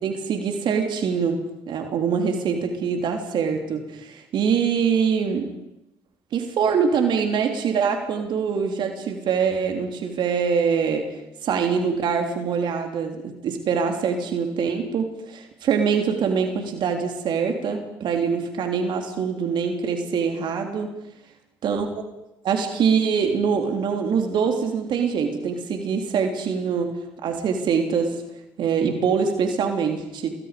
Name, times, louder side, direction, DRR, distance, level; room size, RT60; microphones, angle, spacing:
voice 1, 0.0-1.4 1.7-5.5 6.3-11.1 11.4-20.9 21.6-21.9 22.4-26.9 27.2-28.1 28.6-30.3, right 6 dB, 65° right, 4 dB, 3.3 m, -24 dB
28.0 x 21.0 x 5.2 m, 0.88 s
hypercardioid pair, 55°, 9 cm